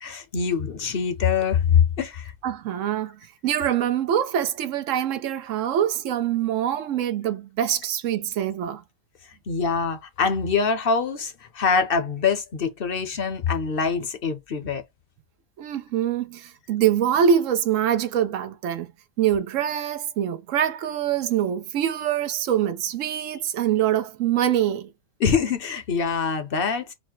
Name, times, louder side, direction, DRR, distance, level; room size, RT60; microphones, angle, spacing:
voice 1, 0.0-2.3 9.5-14.8 25.2-26.9, left 6 dB, 50° left, 0.8 m, -24 dB
voice 2, 2.4-8.8 15.6-18.9 19.2-24.9, right 9 dB, 75° right, 1.0 m, -24 dB
4.2 x 2.1 x 4.5 m
omnidirectional pair, 1.3 m